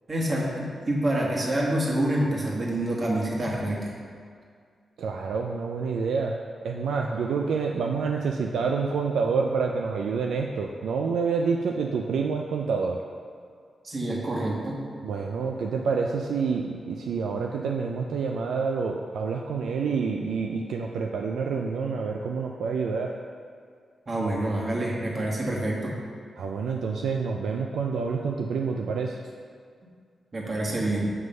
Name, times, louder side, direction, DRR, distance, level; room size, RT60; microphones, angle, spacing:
voice 1, 0.1-3.9 13.8-14.8 24.1-25.9 30.3-31.1, right 1 dB, 45° right, -3 dB, 1.6 m, -27 dB
voice 2, 5.0-6.3 6.6-13.0 15.0-23.1 26.4-29.2, right 5 dB, 85° right, 1 dB, 0.3 m, -28 dB
7.8 x 3.1 x 5.3 m, 2.1 s
supercardioid pair, 50°, 0 cm